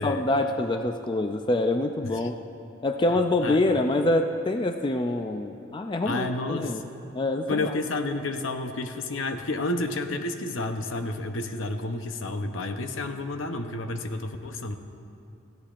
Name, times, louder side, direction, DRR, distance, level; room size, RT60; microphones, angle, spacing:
voice 1, 0.0-2.3 2.8-6.8 7.1-7.7, left 2 dB, 25° left, 6 dB, 0.3 m, -25 dB
voice 2, 6.0-6.8 7.5-14.8, left 2 dB, 70° left, 7 dB, 0.8 m, -30 dB
18.5 x 14.5 x 2.5 m, 2.7 s
head